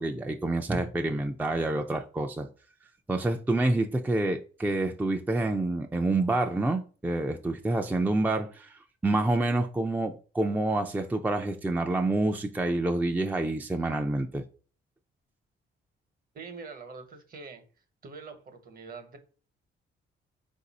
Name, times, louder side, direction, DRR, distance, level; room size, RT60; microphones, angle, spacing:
voice 1, 0.0-2.5 3.1-14.4, right 2 dB, 10° right, 0.4 m, -28 dB
voice 2, 16.3-17.6 18.0-19.2, right 4 dB, 45° right, 1.1 m, -44 dB
4.0 x 2.7 x 4.0 m
cardioid pair, 90°, 20 cm